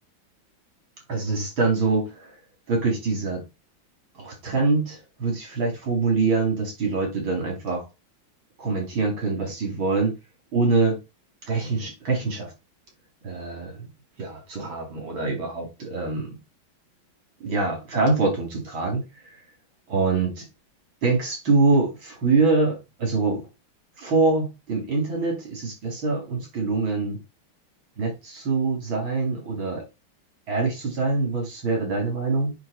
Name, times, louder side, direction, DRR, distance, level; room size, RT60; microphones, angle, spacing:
voice 1, 1.1-2.3 2.7-3.4 4.2-7.8 8.6-10.2 10.5-11.0 11.5-12.5 13.2-13.9 14.2-16.4 17.4-19.3 19.9-20.5 21.0-23.5 24.0-27.2 28.0-29.8 30.5-32.5, right 3 dB, 85° right, 4.4 m, -24 dB
7.7 x 3.9 x 6.8 m
omnidirectional pair, 2.1 m